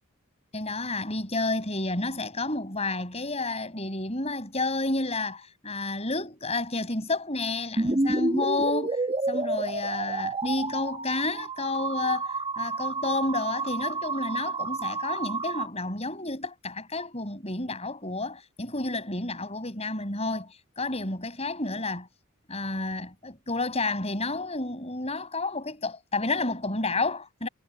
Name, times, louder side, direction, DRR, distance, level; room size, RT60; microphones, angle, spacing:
voice 1, 0.5-9.0 9.3-22.1 22.5-27.5, left 2 dB, 30° left, 5.8 m, -30 dB
sound 1, 7.8-15.7, right 2 dB, 25° right, 1.1 m, -30 dB
head